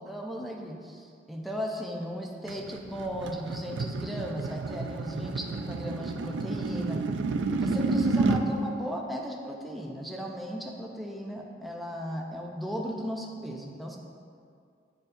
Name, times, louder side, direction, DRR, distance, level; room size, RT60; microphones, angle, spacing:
voice 1, 0.0-7.1 7.6-14.0, equal, ahead, -1 dB, 0.5 m, -36 dB
sound 1, 2.5-8.5, right 3 dB, 85° right, 0.4 m, -30 dB
10.0 x 4.4 x 2.6 m, 2.3 s
head